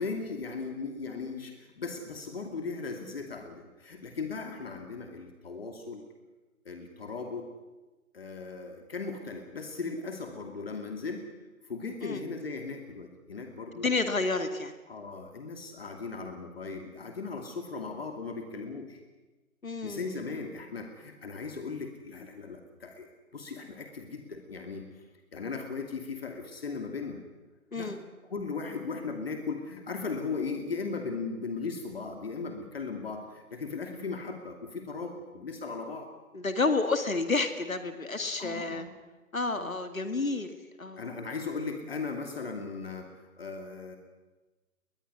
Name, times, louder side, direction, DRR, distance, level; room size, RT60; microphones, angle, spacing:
voice 1, 0.0-6.0 6.6-7.5 8.1-11.3 11.6-13.9 14.9-19.0 19.8-23.1 23.3-25.0 25.3-27.2 27.7-28.0 28.3-36.1 38.4-38.9 39.6-39.7 41.0-44.0, left 4 dB, 40° left, 5 dB, 2.6 m, -37 dB
voice 2, 13.7-14.7 19.6-20.2 27.7-28.0 36.3-38.9 39.3-41.1, left 3 dB, 65° left, 9 dB, 2.2 m, -30 dB
21.5 x 21.0 x 9.7 m, 1.2 s
figure-of-eight pair, 150°, 45 cm